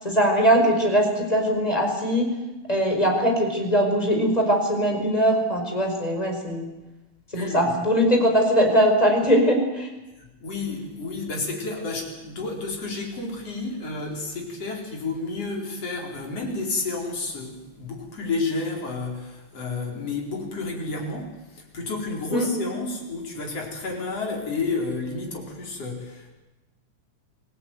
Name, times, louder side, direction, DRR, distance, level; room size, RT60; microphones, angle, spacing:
voice 1, 0.0-2.3 2.7-6.7 7.4-9.9 22.3-22.5, equal, 10° left, 2 dB, 5.0 m, -21 dB
voice 2, 7.3-7.7 10.2-26.3, left 3 dB, 55° left, 0 dB, 5.6 m, -31 dB
25.5 x 17.5 x 9.5 m, 1.1 s
omnidirectional pair, 3.4 m